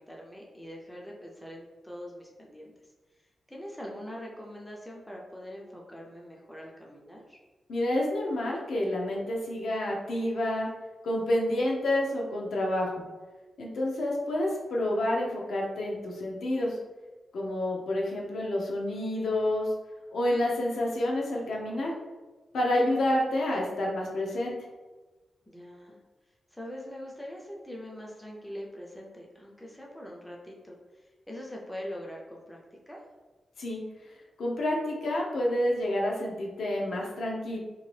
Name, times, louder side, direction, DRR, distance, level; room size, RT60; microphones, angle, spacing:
voice 1, 0.0-2.7 3.5-7.4 25.5-26.0 26.5-33.0, equal, 5° left, -2 dB, 0.4 m, -43 dB
voice 2, 7.7-10.7 11.0-12.9 13.6-16.8 17.3-19.7 20.1-21.9 22.5-24.5 33.6-33.8 34.4-37.6, left 1 dB, 80° left, -2 dB, 0.6 m, -29 dB
2.7 x 2.5 x 3.1 m, 1.2 s
wide cardioid pair, 180°, 0 cm